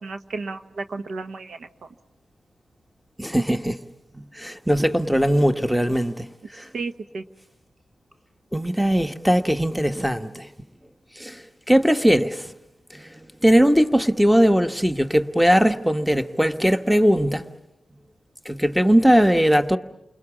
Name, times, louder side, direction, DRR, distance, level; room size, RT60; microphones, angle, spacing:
voice 1, 0.0-1.7 6.7-7.2, right 3 dB, 75° right, 1.2 m, -32 dB
voice 2, 3.2-3.8 4.1-6.3 6.5-6.7 8.5-10.5 11.2-12.5 12.9-17.4 18.4-19.8, equal, 5° right, 1.3 m, -20 dB
29.5 x 21.5 x 7.3 m
cardioid pair, 50°, 0 cm